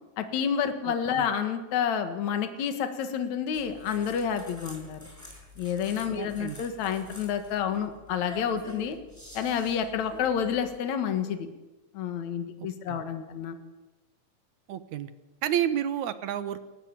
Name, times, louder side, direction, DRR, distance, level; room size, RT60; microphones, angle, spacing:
voice 1, 0.2-5.1 5.6-9.0 9.3-11.5 11.9-13.5, left 8 dB, 70° left, 8 dB, 2.9 m, -29 dB
voice 2, 0.9-1.3 6.2-6.6 12.6-13.0 14.7-15.1 15.4-16.7, right 10 dB, 75° right, 12 dB, 2.6 m, -31 dB
sound 1, 3.5-10.8, left 1 dB, 5° left, 6.2 m, -48 dB
28.5 x 14.5 x 9.0 m, 1.1 s
omnidirectional pair, 3.4 m